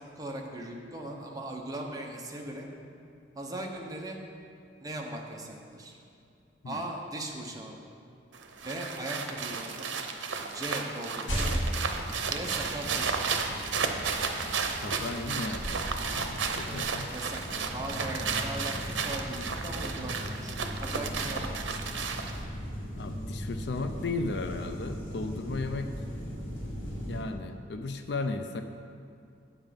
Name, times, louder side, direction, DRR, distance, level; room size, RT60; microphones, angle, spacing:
voice 1, 0.0-2.7 3.4-4.2 4.8-6.0 6.6-7.7 8.6-9.9 10.5-11.6 12.3-13.3 16.7-22.1, right 1 dB, 20° right, 0 dB, 0.9 m, -39 dB
sound 1, 8.3-22.4, right 5 dB, 85° right, 0.7 m, -33 dB
sound 2, 11.3-27.2, equal, 85° left, 2.2 m, -37 dB
voice 2, 14.8-17.1 23.0-25.9 27.1-28.6, left 3 dB, 65° left, 8 dB, 0.5 m, -35 dB
8.6 x 7.2 x 5.2 m, 2.4 s
head